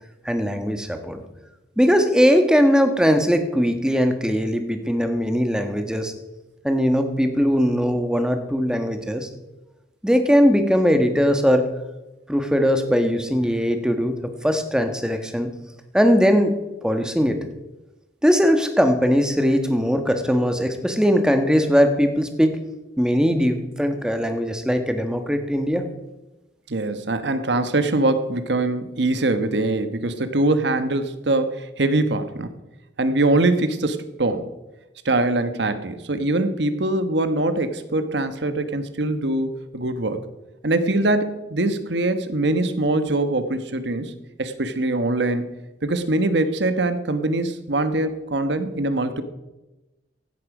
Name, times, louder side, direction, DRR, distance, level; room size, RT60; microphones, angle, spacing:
voice 1, 0.2-1.2 1.8-6.1 6.6-9.3 10.0-11.6 12.3-14.2 14.4-15.5 15.9-16.5 16.8-17.4 18.2-22.6 23.0-25.8, equal, 5° right, 6 dB, 1.3 m, -20 dB
voice 2, 26.7-32.5 33.0-34.5 35.0-40.2 40.6-44.1 44.4-45.5 45.8-49.2, right 2 dB, 70° right, 10 dB, 1.2 m, -23 dB
16.0 x 11.5 x 4.9 m, 1.0 s
head